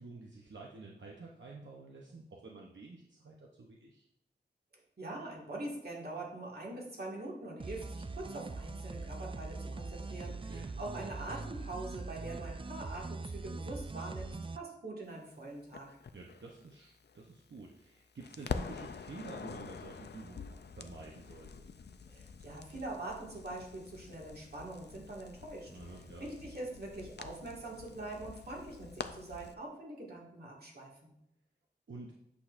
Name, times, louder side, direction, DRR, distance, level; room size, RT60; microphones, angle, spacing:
voice 1, 0.0-4.1 10.3-11.1 16.1-21.7 25.7-26.3 31.9-32.2, right 3 dB, 85° right, -2 dB, 0.8 m, -50 dB
voice 2, 5.0-15.9 22.1-25.7 26.2-31.1, right 2 dB, 60° right, -3 dB, 1.9 m, -43 dB
sound 1, 7.6-14.6, right 3 dB, 30° right, 0.3 m, -42 dB
Crackle, 15.7-17.9 18.2-29.5, left 5 dB, 65° left, 0.4 m, -46 dB
8.4 x 6.2 x 2.5 m, 0.81 s
wide cardioid pair, 75°, 19 cm